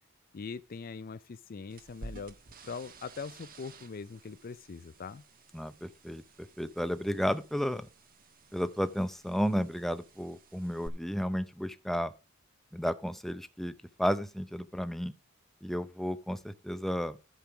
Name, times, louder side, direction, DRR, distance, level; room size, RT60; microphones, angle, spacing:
voice 1, 0.3-5.2, left 5 dB, 45° left, 0.4 m, -42 dB
sound 1, 1.7-10.9, right 2 dB, 45° right, 1.4 m, -53 dB
voice 2, 5.5-6.2 6.6-7.9 8.5-12.1 12.7-13.7 14.0-15.1 15.6-17.2, equal, ahead, 0.6 m, -32 dB
12.0 x 5.5 x 5.9 m
head